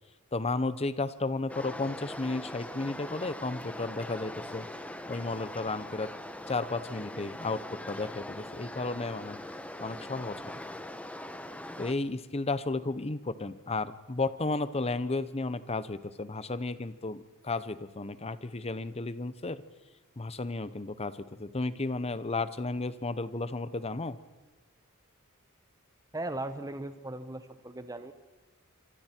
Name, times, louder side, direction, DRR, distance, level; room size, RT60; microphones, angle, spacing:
voice 1, 0.3-4.7 5.1-6.1 6.5-9.4 9.8-10.4 11.8-19.6 20.2-24.2, left 3 dB, 30° left, 14 dB, 0.9 m, -33 dB
sound 1, 1.5-11.9, left 1 dB, 5° left, 1.1 m, -42 dB
voice 2, 26.1-28.1, right 2 dB, 15° right, 9 dB, 0.9 m, -38 dB
26.0 x 25.0 x 4.5 m, 1.3 s
head